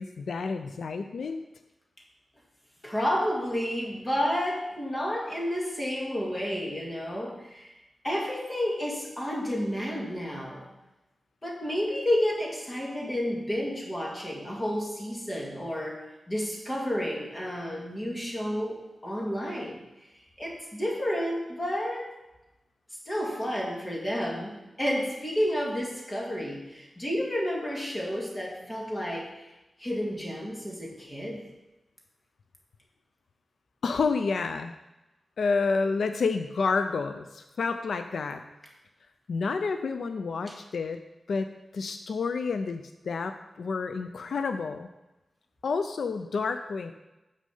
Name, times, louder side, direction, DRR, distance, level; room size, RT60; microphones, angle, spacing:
voice 1, 0.0-1.4 33.8-34.7 35.4-38.4 39.3-41.0 41.3-44.9 45.6-46.9, left 4 dB, 85° left, 8 dB, 0.4 m, -29 dB
voice 2, 2.8-7.7 8.0-10.7 11.4-19.8 20.4-22.1 23.1-29.3 29.8-31.5 40.5-40.6, equal, 20° left, -2 dB, 1.9 m, -31 dB
6.6 x 6.2 x 5.4 m, 0.99 s
wide cardioid pair, 150°, 0 cm